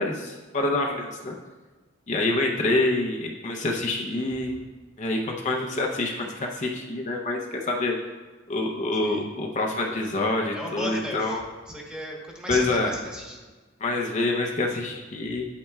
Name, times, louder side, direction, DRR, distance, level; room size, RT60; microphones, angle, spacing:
voice 1, 0.0-1.4 2.1-4.6 5.0-7.9 8.5-11.4 12.5-12.9 13.8-15.5, left 2 dB, 35° left, 0 dB, 0.6 m, -26 dB
voice 2, 10.5-11.4 11.7-13.4, equal, 5° right, -1 dB, 1.1 m, -35 dB
8.6 x 8.2 x 2.3 m, 1.3 s
head